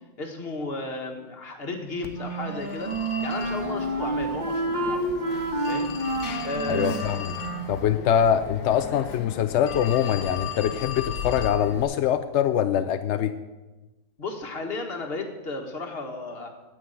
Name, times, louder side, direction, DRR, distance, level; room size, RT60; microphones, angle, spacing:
voice 1, 0.2-2.9 3.2-5.1 5.7-5.9 6.4-7.2 7.9-8.0 14.2-16.5, left 2 dB, 40° left, 3 dB, 1.7 m, -34 dB
Telephone, 2.0-11.8, left 8 dB, 85° left, 1.5 m, -37 dB
Wind instrument woodwind instrument, 2.1-7.8, right 2 dB, 30° right, 1.2 m, -29 dB
voice 2, 6.7-7.2 7.7-13.3, left 9 dB, 70° left, 10 dB, 0.7 m, -23 dB
9.7 x 9.3 x 8.0 m, 1.1 s
omnidirectional pair, 1.7 m